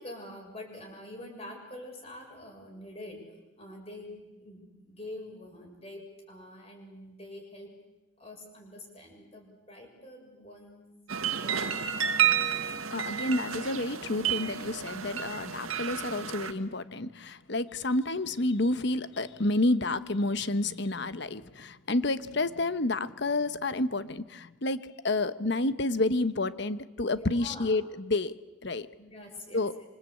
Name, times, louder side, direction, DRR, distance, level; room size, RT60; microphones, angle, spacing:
voice 1, 0.0-3.2 3.6-7.7 8.2-10.9 11.3-11.7 27.1-27.8 29.0-29.7, left 1 dB, 30° left, 1 dB, 7.2 m, -45 dB
sound 1, 11.1-16.5, right 9 dB, 90° right, 1.9 m, -30 dB
voice 2, 12.6-28.3 28.6-28.9 29.5-29.7, left 2 dB, 55° left, 13 dB, 1.1 m, -29 dB
26.5 x 25.5 x 8.6 m, 1.0 s
head